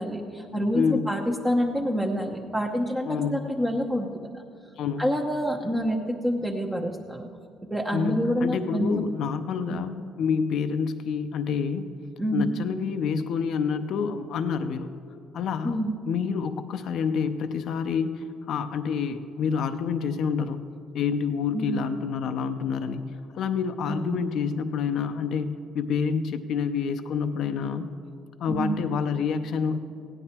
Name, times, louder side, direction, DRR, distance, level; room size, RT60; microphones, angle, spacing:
voice 1, 0.0-4.1 4.3-4.4 5.0-7.3 7.7-9.0 9.7-9.8 12.2-12.5 15.6-16.0 21.5-21.9 23.9-24.2 28.5-28.7, equal, 10° right, 0 dB, 0.8 m, -27 dB
voice 2, 0.7-1.1 3.1-3.4 4.8-5.0 7.9-11.8 12.3-14.9 15.3-20.6 20.9-27.9 28.4-29.8, left 6 dB, 65° left, 9 dB, 0.6 m, -28 dB
16.0 x 10.0 x 4.4 m, 2.7 s
cardioid pair, 95°, 0 cm